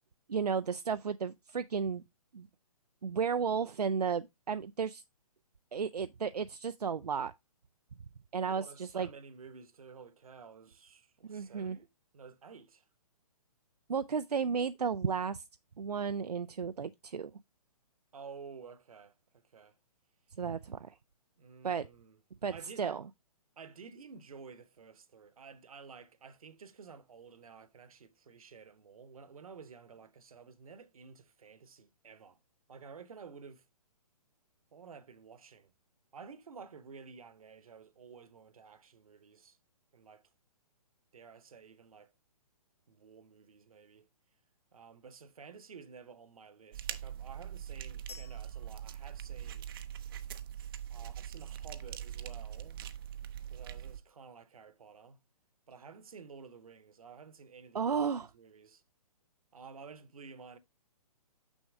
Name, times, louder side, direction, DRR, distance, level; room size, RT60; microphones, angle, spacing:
voice 1, 0.3-2.0 2.3-2.5 3.0-5.0 5.7-7.3 8.3-9.1 11.3-11.8 13.9-15.4 15.8-17.3 20.4-20.9 21.6-21.9 22.4-23.0 57.7-58.3, right 6 dB, 85° right, 0.4 m, -33 dB
voice 2, 8.6-11.9 12.1-12.9 18.1-19.8 21.4-22.2 22.5-23.0 23.5-32.4 32.7-33.6 34.7-35.7 36.1-39.6 39.9-40.2 41.1-42.1 42.9-44.1 44.7-49.7 50.9-52.8 53.5-55.2 55.7-58.8 59.5-60.6, right 5 dB, 65° right, 1.0 m, -52 dB
sound 1, 46.7-54.0, right 10 dB, 35° right, 0.6 m, -42 dB
sound 2, 48.1-50.0, left 4 dB, 80° left, 1.1 m, -55 dB
6.3 x 6.2 x 3.4 m
figure-of-eight pair, 130°, 20 cm